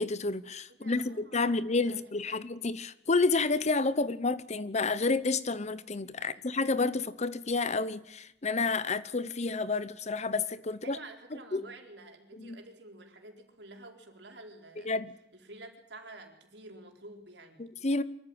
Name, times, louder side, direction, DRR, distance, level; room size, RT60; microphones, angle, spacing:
voice 1, 0.0-11.0 11.5-11.7 12.3-12.6 14.8-15.1 17.6-18.0, left 3 dB, 40° left, 0.9 m, -30 dB
voice 2, 0.8-1.6 1.9-2.4 6.2-6.5 10.8-14.9 15.3-17.6, right 2 dB, 75° right, 4.4 m, -50 dB
24.5 x 14.0 x 8.8 m
head